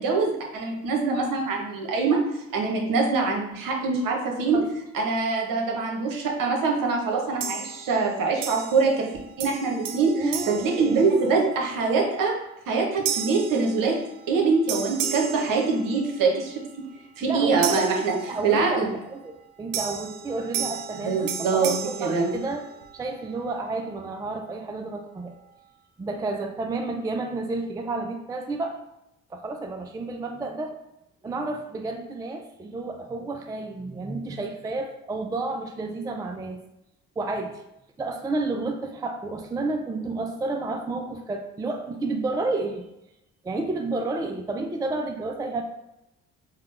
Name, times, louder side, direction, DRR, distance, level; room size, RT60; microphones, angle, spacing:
voice 1, 0.0-2.2 2.5-4.6 4.9-9.1 9.4-12.3 12.7-14.0 14.3-16.6 17.2-18.1 18.4-18.9 21.0-21.7 22.0-22.3, right 4 dB, 55° right, 1 dB, 1.1 m, -24 dB
sound 1, 7.4-8.1 8.4-9.1 9.4-11.6 12.1-12.4 13.1-14.4 14.7-16.3 17.6-18.8 19.7-23.0, right 8 dB, 75° right, 0.5 m, -34 dB
voice 2, 10.2-11.1 17.2-22.7 22.9-25.3 26.0-28.8 29.3-30.8 31.2-36.6 37.2-37.6 38.0-42.8 43.4-45.6, right 3 dB, 10° right, 4 dB, 0.3 m, -31 dB
4.7 x 2.2 x 3.3 m, 0.87 s
hypercardioid pair, 50°, 39 cm